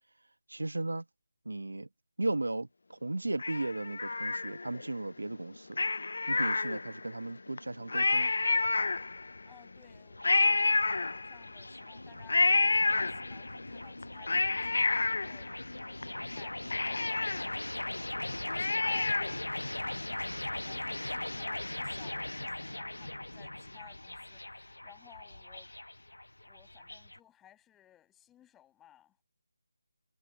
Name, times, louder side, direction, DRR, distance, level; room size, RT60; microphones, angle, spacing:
voice 1, 0.5-1.0 1.4-1.9 2.2-5.9 6.3-8.3, right 2 dB, 80° right, 1.1 m, -35 dB
Cat, 3.4-4.9 5.7-7.1 7.6-7.7 7.9-9.4 10.2-11.6 12.3-13.6 14.0-16.0 16.4-16.5 16.7-19.5 19.8-19.9, left 3 dB, 65° left, 0.4 m, -29 dB
sound 1, 8.4-27.2, left 1 dB, 90° left, 0.8 m, -40 dB
voice 2, 9.2-17.7 18.6-25.7 26.4-29.2, left 12 dB, 10° left, 7.8 m, -60 dB
figure-of-eight pair, 160°, 0 cm